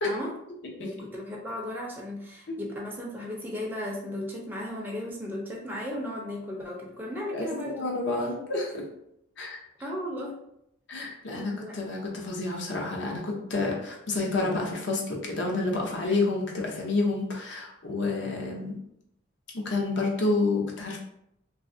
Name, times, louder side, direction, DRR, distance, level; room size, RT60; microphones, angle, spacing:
voice 1, 0.8-7.9 9.8-10.4 11.2-11.7 16.1-16.2, left 1 dB, 10° right, -3 dB, 0.5 m, -35 dB
voice 2, 7.3-8.8 9.4-9.6 10.9-18.8 19.5-21.0, left 3 dB, 60° left, -1 dB, 0.7 m, -29 dB
3.1 x 2.4 x 2.5 m, 0.76 s
head